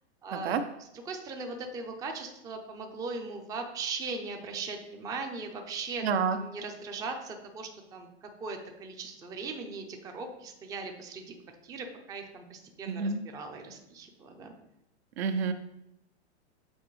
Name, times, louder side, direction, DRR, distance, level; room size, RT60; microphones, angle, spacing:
voice 1, 0.2-6.0 6.3-11.3 11.6-14.5, right 4 dB, 10° right, 4 dB, 0.5 m, -39 dB
voice 2, 6.0-6.4 12.9-13.2 15.2-15.5, right 5 dB, 65° right, 9 dB, 0.7 m, -28 dB
8.4 x 4.1 x 3.1 m, 0.83 s
hypercardioid pair, 145°, 34 cm